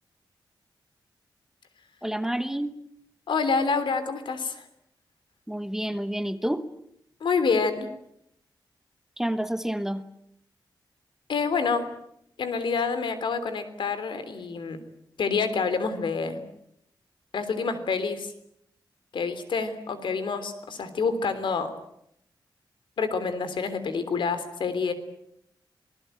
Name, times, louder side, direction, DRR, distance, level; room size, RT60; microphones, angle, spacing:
voice 1, 2.0-2.8 5.5-6.7 9.2-10.1, right 1 dB, 5° right, 11 dB, 1.1 m, -29 dB
voice 2, 3.3-4.6 7.2-7.9 11.3-11.9 12.4-14.8 15.2-16.4 17.3-18.3 19.1-21.7 23.0-24.9, left 5 dB, 85° left, 11 dB, 3.4 m, -27 dB
27.5 x 19.5 x 9.1 m, 0.75 s
wide cardioid pair, 160°, 8 cm